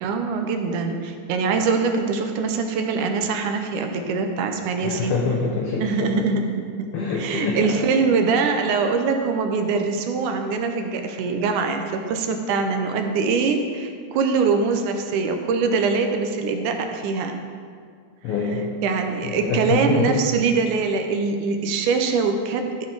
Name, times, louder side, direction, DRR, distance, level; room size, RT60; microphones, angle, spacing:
voice 1, 0.0-5.2 5.8-6.4 6.8-6.9 7.2-17.4 18.8-22.7, right 4 dB, 80° right, 5 dB, 2.2 m, -23 dB
voice 2, 4.8-6.2 6.9-7.9 18.2-18.7 19.2-20.2, left 4 dB, 90° left, -1 dB, 1.3 m, -25 dB
13.0 x 4.5 x 4.7 m, 2.1 s
omnidirectional pair, 3.7 m